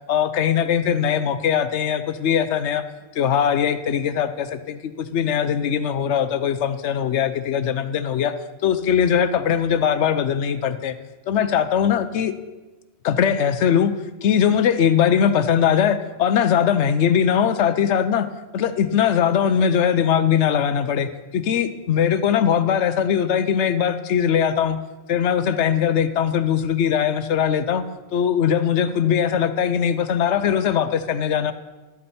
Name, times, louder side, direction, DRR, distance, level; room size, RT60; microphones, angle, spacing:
voice 1, 0.1-2.8 3.1-8.3 8.6-11.0 11.3-12.3 13.0-13.9 14.2-18.3 18.5-24.8 25.1-27.8 28.1-31.5, left 8 dB, 80° left, 12 dB, 1.0 m, -20 dB
12.5 x 8.6 x 4.2 m, 1.2 s
omnidirectional pair, 1.2 m